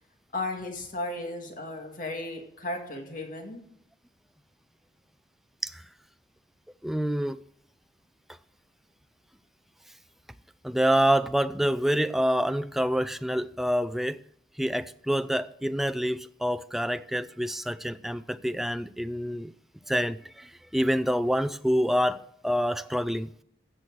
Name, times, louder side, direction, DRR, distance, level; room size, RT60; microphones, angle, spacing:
voice 1, 0.3-3.6, left 2 dB, 45° left, 2.1 m, -35 dB
voice 2, 6.8-7.4 10.6-14.2 14.6-19.5 19.9-23.3, equal, ahead, 0.3 m, -27 dB
15.5 x 6.2 x 6.3 m
head